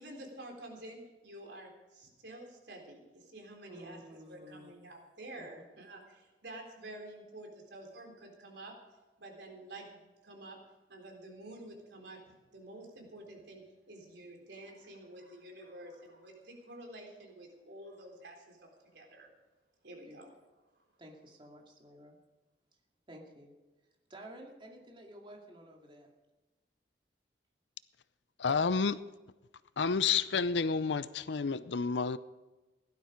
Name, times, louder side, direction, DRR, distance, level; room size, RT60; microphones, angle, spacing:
voice 1, 0.0-8.7 9.2-10.6 10.9-19.3 19.8-20.3, right 1 dB, 75° right, 1 dB, 3.8 m, -49 dB
voice 2, 3.7-4.7 5.4-5.5 20.0-20.2 21.0-22.2 23.1-23.5 24.1-26.1, right 1 dB, 30° right, 0 dB, 2.4 m, -52 dB
voice 3, 28.4-29.0 29.8-32.2, left 5 dB, 80° left, 16 dB, 0.6 m, -30 dB
16.5 x 12.5 x 5.1 m, 1.2 s
head